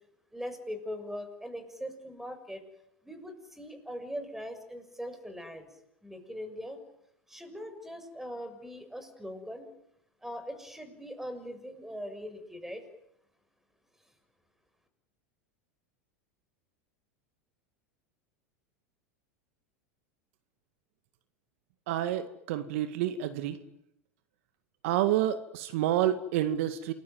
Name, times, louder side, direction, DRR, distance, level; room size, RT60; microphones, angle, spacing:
voice 1, 0.3-2.6 3.0-5.7 6.0-6.8 7.3-9.7 10.2-12.8, equal, 5° right, 9 dB, 6.6 m, -41 dB
voice 2, 21.9-23.6 24.8-26.9, right 12 dB, 65° right, 10 dB, 2.0 m, -29 dB
28.5 x 21.5 x 9.5 m, 0.80 s
hypercardioid pair, 95°, 8 cm